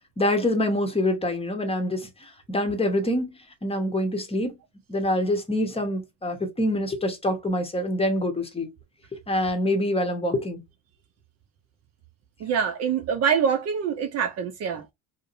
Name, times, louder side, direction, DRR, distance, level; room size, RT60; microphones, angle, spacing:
voice 1, 0.2-4.5 4.9-8.7 9.3-10.6, left 1 dB, 15° left, 0.9 m, -25 dB
voice 2, 12.4-14.8, right 7 dB, 40° right, 0.5 m, -25 dB
2.6 x 2.1 x 2.5 m
hypercardioid pair, 75°, 39 cm